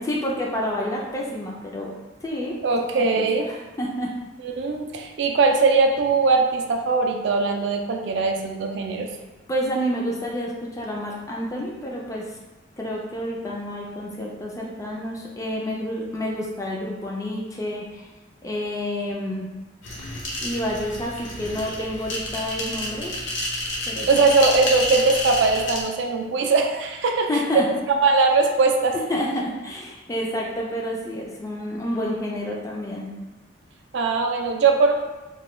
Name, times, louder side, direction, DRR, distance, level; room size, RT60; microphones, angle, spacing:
voice 1, 0.0-1.9 2.2-2.5 2.8-4.1 9.5-12.3 12.8-18.0 18.4-19.5 20.0-20.2 20.4-23.1 23.8-24.1 27.3-27.7 29.1-33.1, equal, 15° left, -2 dB, 0.3 m, -29 dB
voice 2, 2.6-3.5 4.4-9.1 24.1-27.6 28.0-29.0 33.9-34.9, right 4 dB, 60° right, 3 dB, 0.3 m, -20 dB
sound 1, 19.8-25.8, left 1 dB, 65° left, 0.7 m, -30 dB
3.0 x 2.2 x 3.1 m, 1.2 s
head